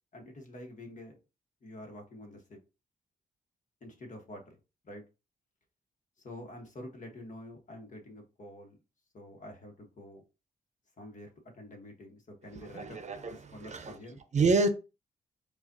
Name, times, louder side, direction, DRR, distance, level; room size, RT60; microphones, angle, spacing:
voice 1, 0.1-1.1 1.6-2.6 3.8-4.6 4.8-5.0 6.2-8.8 9.1-10.2 11.0-13.0 13.3-14.2, left 1 dB, 55° left, 1.3 m, -47 dB
voice 2, 12.5-14.0 14.3-14.7, right 3 dB, 50° right, 0.7 m, -28 dB
4.8 x 2.5 x 2.7 m
cardioid pair, 80°, 16 cm